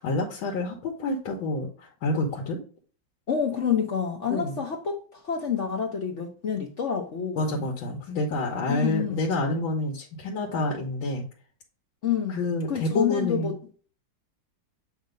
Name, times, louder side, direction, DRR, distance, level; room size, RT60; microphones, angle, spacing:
voice 1, 0.0-2.6 4.3-4.6 7.4-11.2 12.3-13.5, left 2 dB, 80° left, 1.8 m, -28 dB
voice 2, 3.3-7.5 8.7-9.2 12.0-12.4 12.7-13.5, left 7 dB, 55° left, 0.8 m, -28 dB
7.8 x 2.7 x 5.1 m
omnidirectional pair, 2.1 m